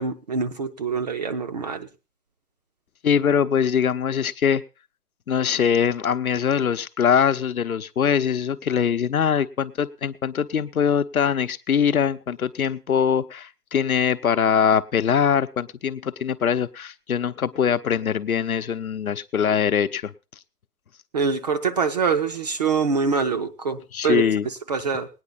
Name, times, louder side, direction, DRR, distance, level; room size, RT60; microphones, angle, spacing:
voice 1, 0.0-1.9 21.1-25.1, right 5 dB, 30° right, 7 dB, 0.6 m, -25 dB
voice 2, 3.0-4.6 5.3-20.1 23.9-24.5, left 7 dB, 65° left, 10 dB, 0.9 m, -22 dB
18.5 x 9.7 x 4.0 m, 0.30 s
figure-of-eight pair, 135°, 46 cm